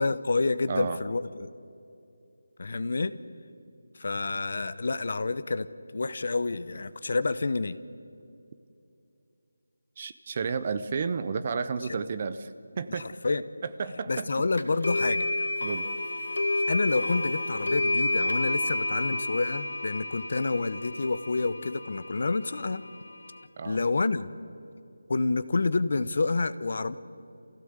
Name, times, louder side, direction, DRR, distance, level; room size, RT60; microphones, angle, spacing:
voice 1, 0.0-1.5 2.6-3.1 4.0-5.7 5.9-7.8 12.9-13.4 14.1-15.3 16.5-22.8 23.6-24.3 25.1-27.0, left 3 dB, 40° left, 14 dB, 0.8 m, -28 dB
voice 2, 0.7-1.0 10.0-12.5 12.8-13.1 13.6-14.3 15.6-15.9 16.5-16.6 16.9-17.0 23.6-23.8, right 5 dB, 25° right, 12 dB, 0.6 m, -32 dB
sound 1, 14.6-23.4, left 2 dB, 70° left, 1.9 m, -30 dB
27.5 x 16.0 x 8.0 m, 2.6 s
figure-of-eight pair, 180°, 0 cm